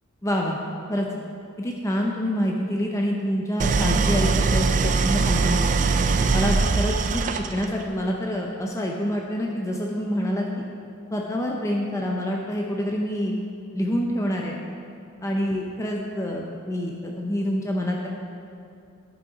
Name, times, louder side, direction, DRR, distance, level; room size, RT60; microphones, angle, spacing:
voice 1, 0.2-0.6 0.9-1.1 1.6-5.7 6.3-10.5 11.1-13.3 13.7-14.6 15.2-18.1, equal, 15° left, -1 dB, 0.6 m, -27 dB
Idling, 3.6-7.8, right 4 dB, 35° right, 0.4 m, -22 dB
11.0 x 6.2 x 5.0 m, 2.5 s
head